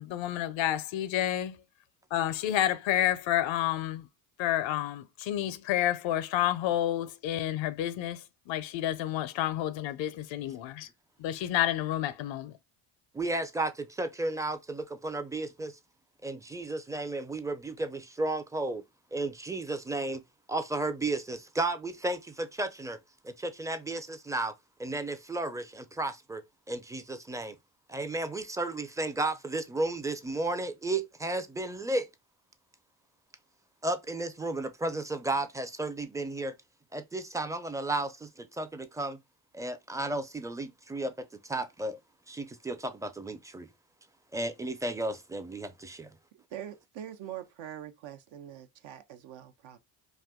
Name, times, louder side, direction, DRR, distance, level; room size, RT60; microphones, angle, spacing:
voice 1, 0.0-1.6 2.1-4.1 4.4-10.9 11.2-12.5, left 12 dB, 70° left, 0.5 m, -30 dB
voice 2, 13.1-15.7 16.2-18.8 19.1-20.2 20.5-23.0 23.2-24.5 24.8-26.4 26.7-27.6 27.9-32.1 33.8-36.5 36.9-39.2 39.5-41.1 41.4-42.0 42.3-43.7 44.3-46.1, right 2 dB, 5° right, 0.4 m, -33 dB
voice 3, 46.3-49.8, right 11 dB, 65° right, 0.7 m, -43 dB
2.6 x 2.3 x 3.5 m
supercardioid pair, 70°, 48 cm